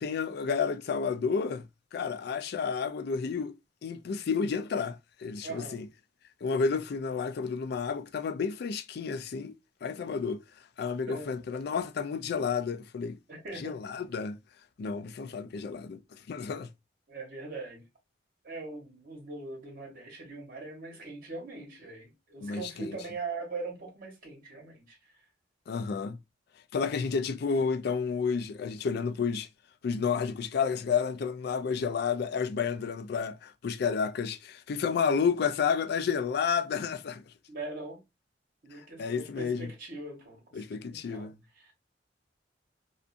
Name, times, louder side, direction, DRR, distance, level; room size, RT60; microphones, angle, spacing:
voice 1, 0.0-1.6 1.9-3.5 3.8-5.9 6.4-9.5 9.8-10.4 10.8-13.2 13.6-14.4 14.8-16.7 22.4-23.0 25.7-26.2 26.7-29.5 29.8-37.2 39.0-39.7 40.5-41.4, left 5 dB, 60° left, 0.3 m, -31 dB
voice 2, 5.4-5.8 11.1-11.3 13.3-13.8 17.1-17.8 18.4-25.0 37.5-38.0 38.6-40.4 40.8-41.3 41.6-41.7, right 3 dB, 50° right, 1.1 m, -41 dB
2.5 x 2.4 x 2.4 m
head